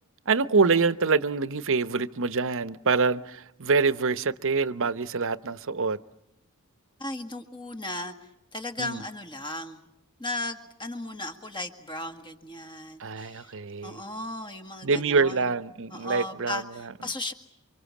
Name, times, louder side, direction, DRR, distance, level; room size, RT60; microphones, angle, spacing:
voice 1, 0.3-6.0 8.8-9.0 13.0-14.0 14.8-16.6, right 4 dB, 60° right, 0.9 m, -25 dB
voice 2, 7.0-8.1 8.5-9.9 10.2-13.6 13.8-15.5 15.9-17.3, left 1 dB, 20° left, 1.9 m, -36 dB
28.0 x 25.5 x 7.3 m
head